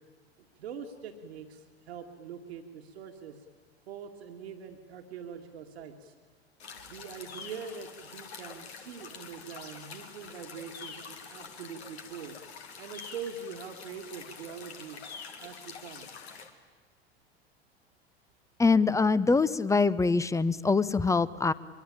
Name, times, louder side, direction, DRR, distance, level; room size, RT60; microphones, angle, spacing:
voice 1, 0.4-3.5 3.9-6.1 6.8-12.4 12.8-15.0 15.4-16.1, right 6 dB, 75° right, 4 dB, 2.1 m, -43 dB
sound 1, 6.6-16.5, left 5 dB, 75° left, 2.8 m, -46 dB
voice 2, 18.6-21.5, left 4 dB, 10° left, 18 dB, 0.8 m, -24 dB
24.0 x 23.0 x 8.9 m, 1.4 s
hypercardioid pair, 80°, 32 cm